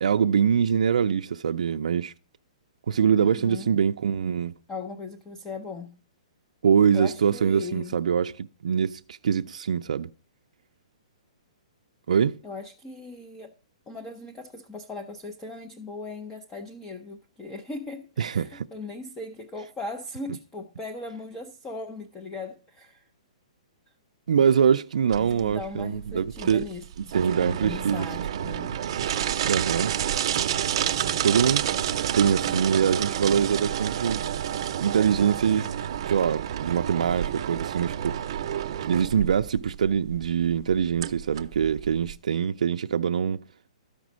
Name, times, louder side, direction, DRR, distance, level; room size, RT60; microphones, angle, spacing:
voice 1, 0.0-2.1 2.9-4.5 6.6-10.1 12.1-12.4 18.2-18.6 24.3-26.6 27.1-28.1 29.4-30.0 31.2-31.7 32.1-34.2 34.8-35.7 36.1-38.2 38.8-43.4, right 7 dB, 85° right, 0.4 m, -24 dB
voice 2, 3.2-3.7 4.7-6.0 6.9-8.0 12.4-13.5 13.9-23.1 25.2-28.7 32.5-32.7, left 3 dB, 10° left, 0.6 m, -39 dB
sound 1, 25.1-42.1, right 10 dB, 40° right, 0.7 m, -29 dB
13.0 x 5.1 x 6.2 m
hypercardioid pair, 170°, 4 cm